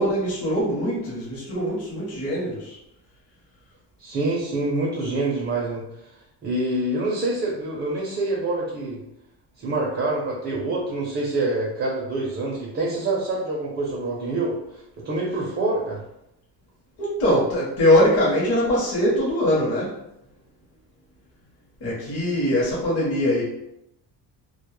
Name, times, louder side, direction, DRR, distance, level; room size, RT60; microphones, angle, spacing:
voice 1, 0.0-2.8 17.0-20.0 21.8-23.4, left 1 dB, 35° left, -6 dB, 0.8 m, -22 dB
voice 2, 4.0-5.8 6.4-9.0 9.6-16.0, right 2 dB, 30° right, -2 dB, 0.5 m, -26 dB
2.2 x 2.0 x 3.0 m, 0.83 s
cardioid pair, 130°, 43 cm